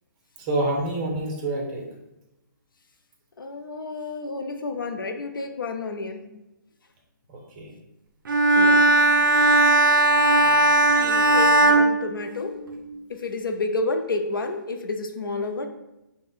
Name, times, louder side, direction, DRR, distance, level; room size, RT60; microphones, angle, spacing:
voice 1, 0.4-1.8 7.3-7.7 10.4-10.6, right 2 dB, 25° right, 0 dB, 0.6 m, -28 dB
voice 2, 3.4-6.3 8.5-8.9 9.2-9.3 10.9-15.7, left 3 dB, 90° left, 6 dB, 0.4 m, -31 dB
Bowed string instrument, 8.3-12.8, right 1 dB, 75° right, 0.4 m, -18 dB
2.4 x 2.1 x 3.6 m, 0.93 s
hypercardioid pair, 145°, 11 cm